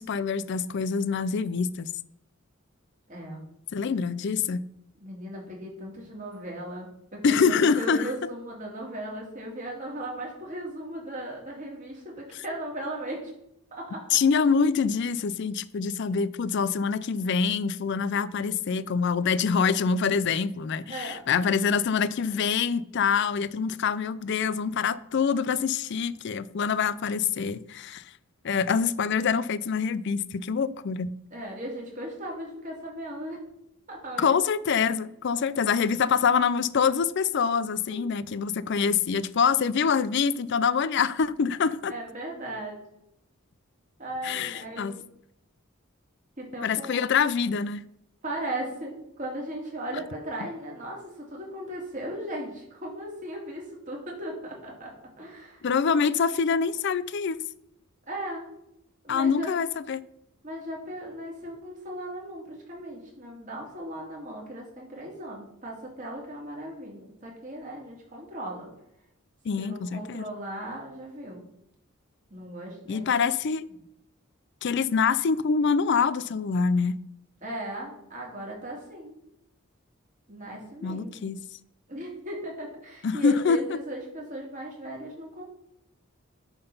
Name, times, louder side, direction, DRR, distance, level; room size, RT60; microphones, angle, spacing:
voice 1, 0.0-1.9 3.7-4.6 7.2-8.1 14.1-28.0 28.4-31.1 34.2-41.9 44.2-44.9 46.6-47.8 55.6-57.4 59.1-60.0 69.5-70.3 72.9-73.7 74.6-77.0 80.8-81.4 83.0-83.6, left 6 dB, 55° left, 0.4 m, -25 dB
voice 2, 3.1-3.4 5.0-13.3 13.7-14.0 20.9-21.4 31.3-33.4 33.9-34.3 37.9-38.1 41.9-42.8 44.0-45.0 46.4-47.1 48.2-54.9 55.2-55.6 58.1-58.4 59.0-59.5 60.4-68.7 69.6-71.4 72.3-73.2 77.4-79.1 80.3-81.2 81.9-85.4, right 1 dB, 35° right, 2.6 m, -37 dB
10.5 x 3.9 x 5.4 m
head